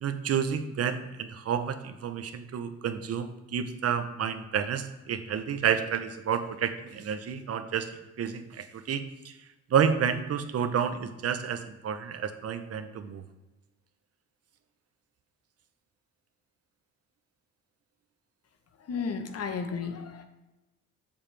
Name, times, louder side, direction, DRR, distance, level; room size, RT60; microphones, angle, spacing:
voice 1, 0.0-7.9 8.2-9.4 9.7-13.2, right 7 dB, 50° right, 9 dB, 0.9 m, -30 dB
voice 2, 18.8-20.2, left 5 dB, 55° left, 7 dB, 1.1 m, -33 dB
7.4 x 7.1 x 3.4 m, 1.1 s
cardioid pair, 90°, 30 cm